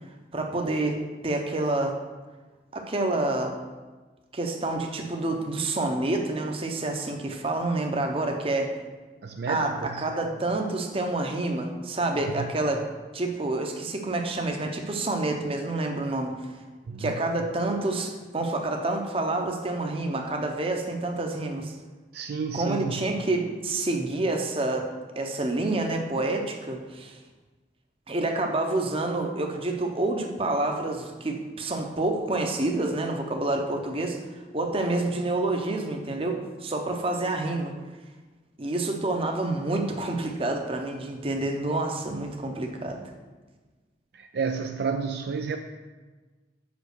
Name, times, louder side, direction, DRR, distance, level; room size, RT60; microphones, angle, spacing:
voice 1, 0.3-2.0 2.7-3.6 4.3-8.8 9.5-12.9 13.1-16.6 17.0-21.7 22.5-27.2 28.1-37.7 38.6-43.1, right 2 dB, 30° right, 3 dB, 0.8 m, -28 dB
voice 2, 9.2-10.0 12.4-12.5 16.9-17.2 22.1-23.0 44.1-45.6, right 5 dB, 60° right, 5 dB, 0.4 m, -31 dB
5.4 x 5.2 x 6.5 m, 1.3 s
head